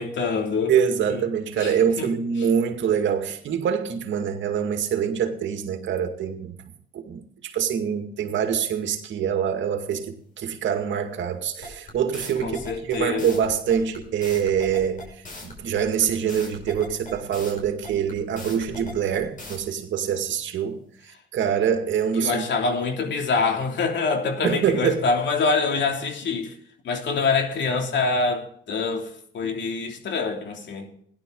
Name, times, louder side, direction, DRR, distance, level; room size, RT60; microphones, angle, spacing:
voice 1, 0.0-0.7 1.1-1.2 1.6-2.1 2.4-2.5 12.4-13.4 22.1-26.6 26.8-30.9, left 4 dB, 65° left, 3.0 m, -25 dB
voice 2, 0.7-6.5 6.9-12.6 12.9-15.0 15.4-20.8 21.0-22.4 24.4-25.0, right 8 dB, 70° right, 2.2 m, -25 dB
sound 1, 11.6-19.6, left 1 dB, 40° left, 6.0 m, -39 dB
17.0 x 11.5 x 3.9 m
cardioid pair, 90°, 20 cm